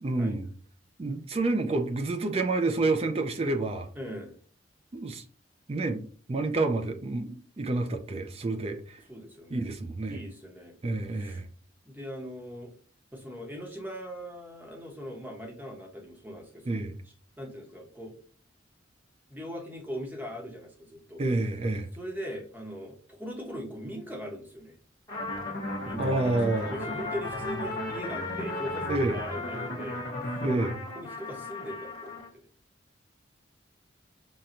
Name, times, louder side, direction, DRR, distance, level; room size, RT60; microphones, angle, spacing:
voice 1, 0.0-0.5 1.0-3.9 4.9-5.2 5.7-6.0 6.3-9.0 9.5-10.2 10.8-11.5 16.7-17.0 21.2-21.9 26.0-26.7 28.9-29.2 30.4-30.9, right 2 dB, 30° right, 0.4 m, -28 dB
voice 2, 4.0-4.4 9.1-9.7 10.1-10.7 11.1-11.4 11.8-12.7 13.1-16.8 17.4-18.1 19.3-21.2 21.9-24.8 25.8-30.0 30.9-32.5, equal, 10° right, 0.9 m, -40 dB
sound 1, 25.1-30.8, left 1 dB, 60° left, 0.8 m, -36 dB
Trumpet, 25.1-32.3, left 2 dB, 20° left, 1.1 m, -38 dB
5.8 x 2.2 x 2.5 m
head